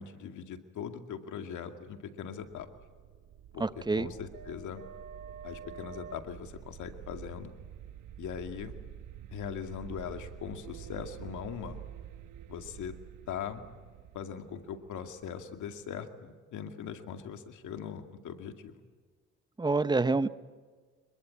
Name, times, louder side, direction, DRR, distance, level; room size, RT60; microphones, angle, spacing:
voice 1, 0.0-2.7 3.5-4.8 5.4-7.5 8.2-8.7 9.3-11.8 12.5-12.9 13.3-13.6 14.1-18.7, left 8 dB, 75° left, 6 dB, 2.3 m, -40 dB
sound 1, 2.3-16.0, right 9 dB, 85° right, 1.2 m, -48 dB
voice 2, 3.6-4.1 19.6-20.3, right 3 dB, 15° right, 14 dB, 0.8 m, -27 dB
26.0 x 22.0 x 8.6 m, 1.5 s
cardioid pair, 90°, 30 cm